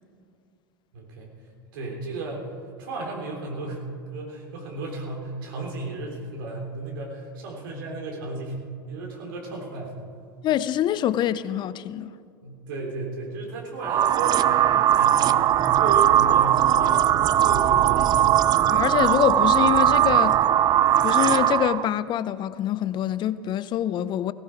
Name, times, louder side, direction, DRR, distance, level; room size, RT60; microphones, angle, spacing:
voice 1, 0.9-1.3 1.7-2.5 2.8-8.6 8.9-10.0 12.4-18.5, right 2 dB, 75° right, 3.6 m, -34 dB
voice 2, 10.4-12.1 18.7-20.4 21.0-24.3, left 11 dB, 40° left, 0.6 m, -25 dB
sound 1, 13.8-21.9, right 11 dB, 35° right, 0.4 m, -19 dB
17.5 x 16.0 x 4.6 m
hypercardioid pair, 90°, 12 cm